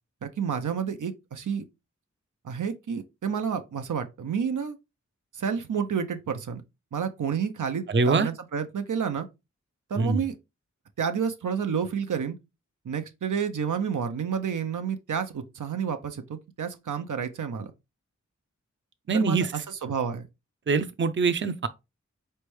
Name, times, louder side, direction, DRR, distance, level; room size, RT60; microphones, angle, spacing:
voice 1, 0.2-1.6 2.4-4.8 5.3-6.6 6.9-9.3 9.9-10.4 11.0-12.4 12.8-17.7 19.1-20.3, right 7 dB, 90° right, 0.6 m, -30 dB
voice 2, 7.9-8.3 10.0-10.2 19.1-19.5 20.7-21.7, right 4 dB, 40° right, 0.5 m, -23 dB
4.2 x 3.3 x 3.1 m
wide cardioid pair, 50°, 30 cm